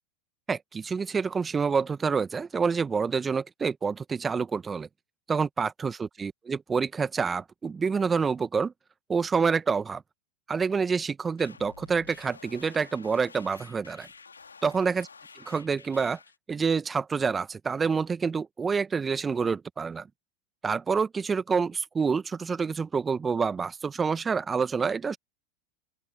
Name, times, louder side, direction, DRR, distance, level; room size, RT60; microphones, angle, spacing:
voice 1, 0.5-4.9 5.3-8.7 9.1-10.0 10.5-14.1 14.6-15.1 15.5-16.2 16.5-20.1 20.6-25.2, right 5 dB, 20° right, 1.3 m, -27 dB
sound 1, 11.4-16.4, left 5 dB, 90° left, 1.8 m, -50 dB
open air
hypercardioid pair, 90°, 0 cm